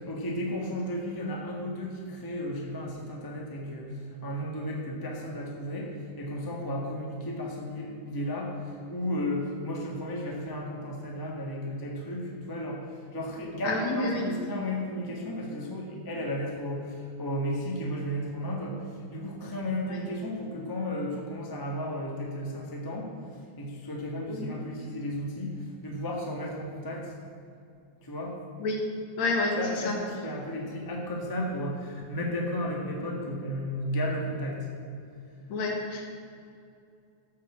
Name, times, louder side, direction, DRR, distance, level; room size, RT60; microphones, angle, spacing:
voice 1, 0.0-27.2 28.0-28.4 29.6-34.7, equal, 10° left, -2 dB, 1.0 m, -34 dB
voice 2, 13.6-14.2 19.9-20.0 24.3-24.5 28.6-28.8 29.2-29.9 35.5-36.2, left 2 dB, 60° left, 1 dB, 2.5 m, -29 dB
14.5 x 5.7 x 7.4 m, 2.5 s
omnidirectional pair, 3.7 m